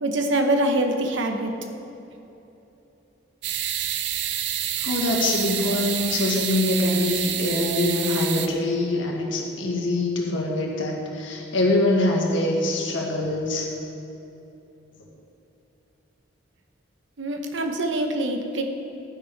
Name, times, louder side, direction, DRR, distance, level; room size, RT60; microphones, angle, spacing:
voice 1, 0.0-1.5 17.2-18.6, right 1 dB, 80° right, 4 dB, 1.0 m, -24 dB
sound 1, 3.4-8.5, right 10 dB, 65° right, 0.5 m, -28 dB
voice 2, 4.8-13.7, left 2 dB, 90° left, -1 dB, 1.9 m, -24 dB
11.0 x 10.0 x 3.5 m, 3.0 s
head